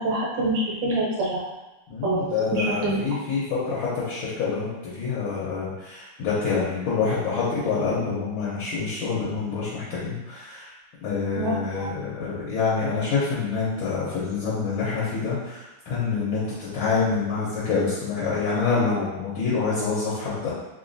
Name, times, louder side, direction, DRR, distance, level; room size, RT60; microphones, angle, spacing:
voice 1, 0.0-1.4 2.0-3.1 11.3-11.9, right 1 dB, 65° right, -5 dB, 1.5 m, -26 dB
voice 2, 1.9-10.7 11.0-20.5, left 5 dB, 75° left, -9 dB, 1.6 m, -26 dB
3.7 x 3.0 x 2.6 m, 1.0 s
omnidirectional pair, 2.3 m